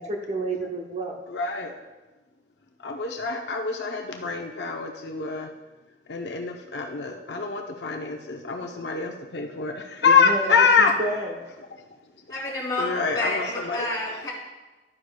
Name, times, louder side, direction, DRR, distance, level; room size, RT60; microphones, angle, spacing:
voice 1, 0.0-1.1 10.0-10.5 10.8-11.4, right 1 dB, 40° right, 2 dB, 0.9 m, -29 dB
voice 2, 1.3-1.7 2.8-5.5 6.1-10.9 12.8-13.9, left 5 dB, 70° left, 2 dB, 0.7 m, -25 dB
voice 3, 12.3-12.8 13.1-14.3, left 1 dB, 25° left, -5 dB, 3.1 m, -29 dB
12.0 x 9.7 x 2.3 m, 1.2 s
head